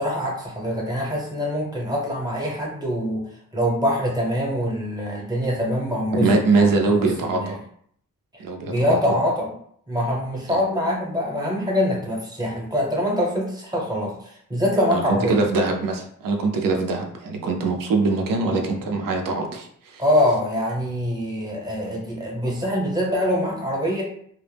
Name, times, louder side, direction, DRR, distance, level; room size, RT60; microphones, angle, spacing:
voice 1, 0.0-3.2 3.5-6.3 6.5-6.7 7.0-7.1 7.3-7.5 8.3-9.5 9.9-15.4 20.0-24.0, equal, 10° right, -3 dB, 0.8 m, -24 dB
voice 2, 6.1-7.6 8.4-9.2 10.5-10.6 14.9-20.0, right 3 dB, 70° right, 3 dB, 0.5 m, -23 dB
2.1 x 2.0 x 3.3 m, 0.64 s
cardioid pair, 100°, 34 cm